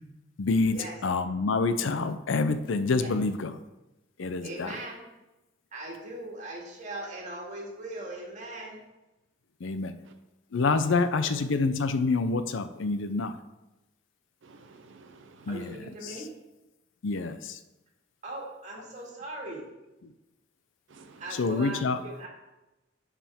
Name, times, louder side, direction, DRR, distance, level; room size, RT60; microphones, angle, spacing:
voice 1, 0.4-0.8 1.0-3.6 4.2-4.7 9.6-9.9 10.5-13.4 15.5-15.8 16.0-16.2 17.0-17.6 20.0-20.1 21.3-22.0, left 3 dB, 80° left, 11 dB, 0.5 m, -27 dB
voice 2, 4.4-5.1 5.7-8.8 11.0-11.6 15.5-16.3 18.2-19.6 21.2-22.3, right 1 dB, 40° right, -2 dB, 2.0 m, -40 dB
voice 3, 14.4-15.8 20.9-21.5, right 3 dB, 75° right, 7 dB, 0.6 m, -53 dB
11.0 x 4.9 x 3.6 m, 1.0 s
head